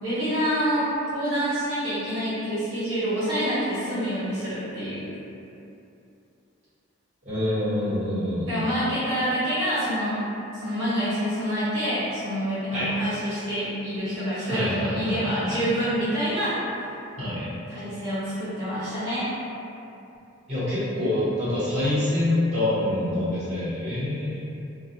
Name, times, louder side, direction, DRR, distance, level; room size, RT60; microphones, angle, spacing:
voice 1, 0.0-5.1 8.5-10.2 10.5-16.6 17.7-19.3, equal, 60° right, -13 dB, 0.9 m, -27 dB
voice 2, 7.2-8.7 12.7-12.9 14.5-15.6 17.2-17.5 20.5-24.4, left 1 dB, 35° right, -13 dB, 1.1 m, -26 dB
2.4 x 2.2 x 2.7 m, 2.8 s
head